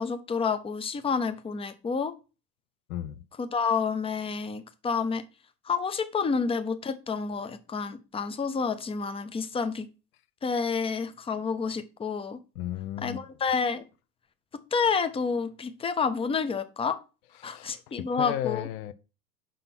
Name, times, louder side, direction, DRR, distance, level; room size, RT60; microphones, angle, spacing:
voice 1, 0.0-2.1 3.4-5.2 5.6-9.9 10.4-12.4 13.0-13.8 14.5-17.0 17.4-18.7, left 5 dB, 10° left, 0.6 m, -29 dB
voice 2, 2.9-3.2 12.6-13.2 17.4-18.9, left 11 dB, 65° left, 0.7 m, -34 dB
5.7 x 3.8 x 5.9 m
hypercardioid pair, 95°, 49 cm